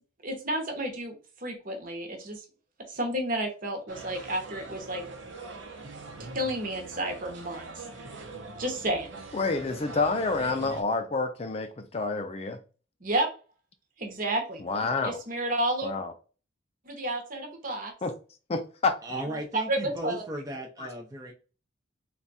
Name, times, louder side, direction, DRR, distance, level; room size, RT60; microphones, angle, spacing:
voice 1, 0.2-1.1 1.4-2.4 2.9-5.0 6.3-7.8 8.6-9.1 13.0-13.3 14.0-14.6 15.0-15.9 16.9-17.9 19.5-20.2, right 1 dB, 45° right, 1.0 m, -31 dB
sound 1, 3.9-10.8, right 3 dB, 70° right, 0.9 m, -43 dB
voice 2, 9.3-12.6 14.6-15.2 15.8-16.1 18.0-18.1 18.5-18.9 20.8-20.9, left 3 dB, 30° left, 0.4 m, -28 dB
voice 3, 19.0-21.3, right 1 dB, 15° right, 0.5 m, -36 dB
3.5 x 2.4 x 4.0 m
head